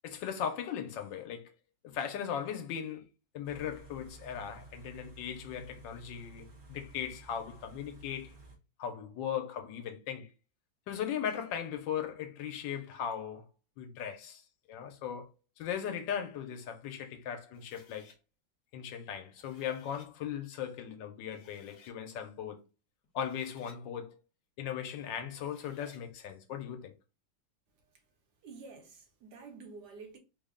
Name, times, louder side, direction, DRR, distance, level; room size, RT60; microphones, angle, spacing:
voice 1, 0.0-1.5 1.8-3.1 3.3-8.3 8.8-10.3 10.9-13.4 13.8-14.4 14.7-18.1 18.7-22.6 23.1-24.2 24.6-26.9, left 8 dB, 90° left, 1.4 m, -38 dB
Car / Idling, 3.4-8.6, right 3 dB, 45° right, 0.6 m, -54 dB
sound 1, 17.5-18.2 19.2-20.1 20.9-21.0 21.3-22.0 23.0-23.8 25.3-26.1, left 4 dB, 55° left, 1.3 m, -60 dB
voice 2, 28.4-30.2, right 4 dB, 70° right, 1.3 m, -49 dB
3.4 x 2.1 x 3.6 m
omnidirectional pair, 2.0 m